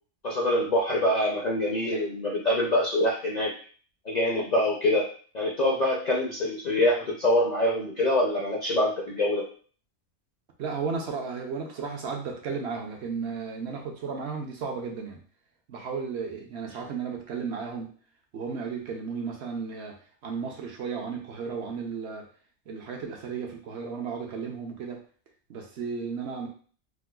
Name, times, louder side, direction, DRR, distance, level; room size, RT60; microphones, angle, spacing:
voice 1, 0.2-3.5 4.0-9.5, left 1 dB, 55° left, -3 dB, 0.5 m, -25 dB
voice 2, 10.6-15.2 15.7-17.9 18.3-19.9 20.2-22.2 22.7-25.0 25.5-26.5, right 5 dB, 65° right, 0 dB, 0.8 m, -34 dB
4.7 x 2.1 x 2.2 m, 0.42 s
omnidirectional pair, 1.3 m